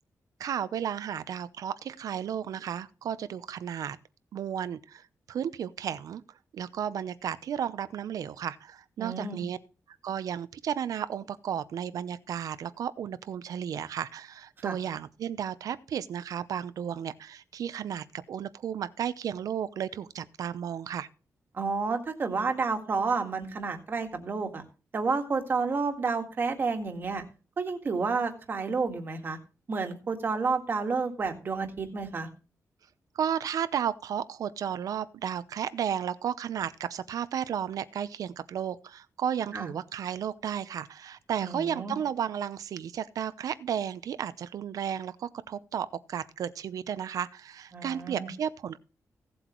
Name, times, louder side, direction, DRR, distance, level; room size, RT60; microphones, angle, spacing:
voice 1, 0.4-4.0 4.3-6.2 6.5-9.6 10.0-21.1 33.1-48.8, right 9 dB, 80° right, 0.7 m, -33 dB
voice 2, 9.0-9.4 14.6-14.8 21.5-24.6 24.9-27.2 27.6-29.4 29.7-32.3 39.5-39.7 41.4-42.0 47.7-48.3, right 4 dB, 35° right, 1.8 m, -30 dB
16.5 x 7.9 x 3.1 m
wide cardioid pair, 170°, 6 cm